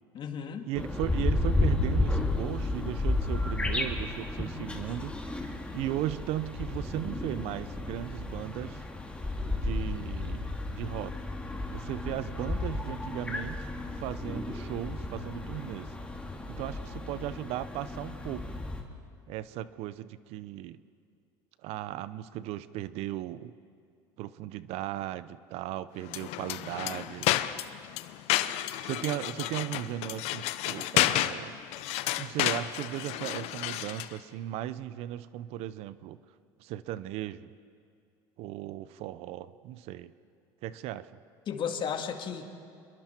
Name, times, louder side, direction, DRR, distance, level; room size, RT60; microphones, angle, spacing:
voice 1, 0.1-0.7 41.5-42.4, left 7 dB, 45° left, 6 dB, 2.0 m, -34 dB
voice 2, 0.7-8.8 9.6-11.1 11.7-13.7 14.0-15.9 16.5-18.5 19.3-20.8 21.6-23.5 24.2-27.3 28.8-31.6 32.2-36.2 36.6-37.5 38.4-40.1 40.6-41.1, right 13 dB, 65° right, 16 dB, 0.7 m, -36 dB
sound 1, 0.8-18.8, left 2 dB, 10° left, 2.4 m, -33 dB
sound 2, 26.0-34.2, left 15 dB, 70° left, 0.8 m, -31 dB
27.5 x 22.0 x 4.5 m, 2.4 s
supercardioid pair, 95°, 11 cm